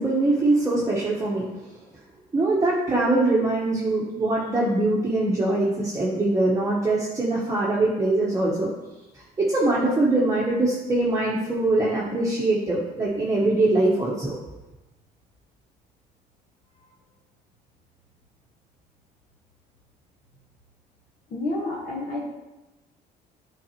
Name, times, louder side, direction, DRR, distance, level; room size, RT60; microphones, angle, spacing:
voice 1, 0.0-1.5 2.3-8.7 9.1-14.3, right 2 dB, 20° right, -5 dB, 1.1 m, -23 dB
voice 2, 21.3-22.2, left 2 dB, 50° left, -6 dB, 1.3 m, -29 dB
8.4 x 4.0 x 3.0 m, 1.0 s
cardioid pair, 110°, 17 cm